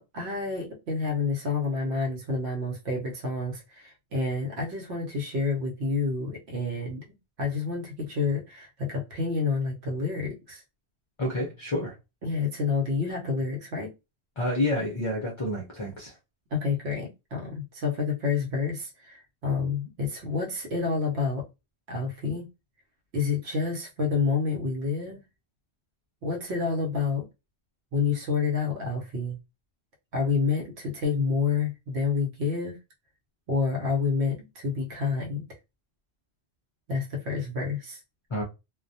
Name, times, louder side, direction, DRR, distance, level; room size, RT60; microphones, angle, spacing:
voice 1, 0.0-7.0 7.4-10.6 12.2-13.9 16.5-21.5 21.9-22.4 23.1-25.2 26.2-27.2 27.9-29.4 30.1-32.7 33.5-35.4 36.9-38.0, left 4 dB, 75° right, 1.0 m, -28 dB
voice 2, 11.2-11.9 14.4-16.1 38.3-38.4, left 1 dB, 40° left, 0.4 m, -29 dB
2.2 x 2.1 x 2.6 m
omnidirectional pair, 1.1 m